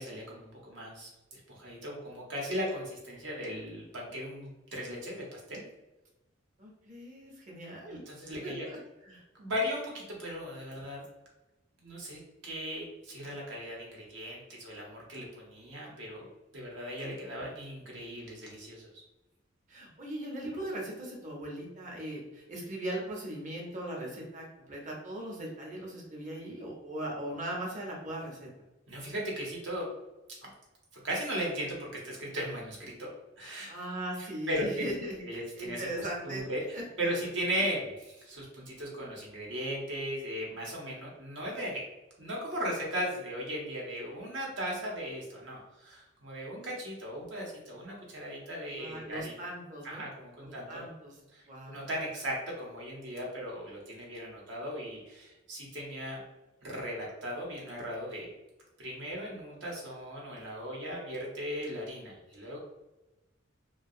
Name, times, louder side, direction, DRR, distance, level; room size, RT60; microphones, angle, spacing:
voice 1, 0.0-5.6 7.9-8.7 9.4-11.0 11.8-16.3 16.5-18.9 28.9-29.9 31.0-33.1 33.4-33.7 34.2-34.9 35.2-36.6 37.0-41.8 42.2-49.3 49.8-50.9 51.3-56.2 56.6-58.3 58.8-62.6, equal, 75° right, -2 dB, 0.8 m, -37 dB
voice 2, 6.6-8.0 8.4-9.2 19.7-28.5 33.7-36.4 36.7-36.8 48.8-50.1 50.4-51.2 51.5-51.8, right 1 dB, 40° right, -2 dB, 0.7 m, -39 dB
2.4 x 2.2 x 2.6 m, 1.0 s
head